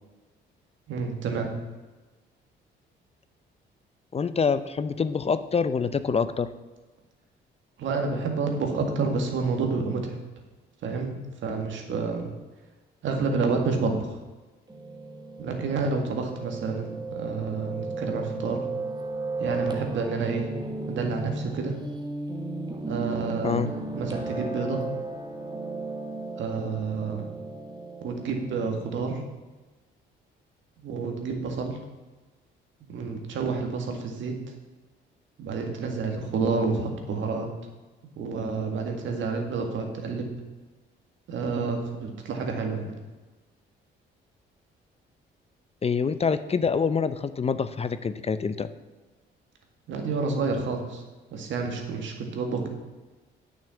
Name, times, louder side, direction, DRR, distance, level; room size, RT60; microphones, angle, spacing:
voice 1, 0.9-1.5 7.8-10.2 10.8-12.3 13.0-14.2 15.4-18.7 19.4-20.5 20.9-21.8 22.9-23.7 23.9-24.8 26.4-27.3 28.0-29.2 30.8-31.8 32.8-34.4 35.4-37.5 38.2-40.3 41.3-43.0 49.9-51.0 51.3-52.7, right 4 dB, 75° right, 3 dB, 1.9 m, -29 dB
voice 2, 4.1-6.5 23.4-23.7 45.8-48.7, left 5 dB, 30° left, 12 dB, 0.6 m, -26 dB
Piano, 14.7-29.1, right 3 dB, 20° right, 1.5 m, -35 dB
8.9 x 6.5 x 7.0 m, 1.2 s
cardioid pair, 90°, 20 cm